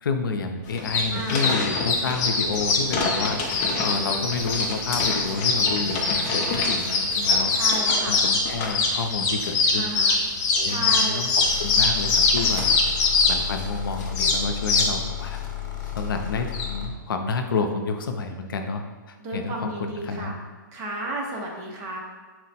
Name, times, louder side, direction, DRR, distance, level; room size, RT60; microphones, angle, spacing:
voice 1, 0.0-7.5 8.1-9.9 10.5-12.8 13.3-15.4 16.0-20.3, left 4 dB, 90° left, 5 dB, 0.5 m, -29 dB
sound 1, 0.6-16.7, left 3 dB, 25° left, 0.5 m, -23 dB
voice 2, 1.1-1.4 3.2-3.3 7.5-8.2 9.8-10.2 10.6-11.3 19.2-20.4 20.7-22.0, right 1 dB, 25° right, -1 dB, 0.7 m, -33 dB
sound 2, 11.5-17.0, left 12 dB, 70° left, 0.9 m, -33 dB
4.5 x 2.1 x 4.1 m, 1.4 s
hypercardioid pair, 150°, 11 cm